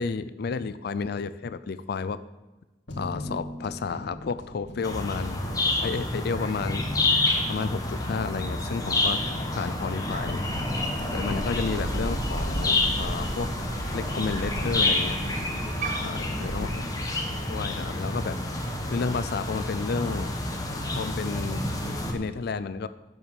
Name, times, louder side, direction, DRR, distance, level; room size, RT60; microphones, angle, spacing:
voice 1, 0.0-2.2 3.0-5.4 5.8-6.8 7.5-9.2 9.5-10.4 11.1-13.5 13.9-15.2 16.0-16.9 17.5-18.4 18.9-20.3 20.9-21.6 22.1-22.9, left 5 dB, 60° left, 14 dB, 0.4 m, -31 dB
sound 1, 2.9-18.7, left 1 dB, 75° left, 2.0 m, -40 dB
sound 2, 4.8-22.1, left 2 dB, 20° left, 1.2 m, -29 dB
Crow, 10.1-16.7, right 1 dB, 45° right, 1.4 m, -34 dB
8.0 x 7.3 x 7.1 m, 1.1 s
head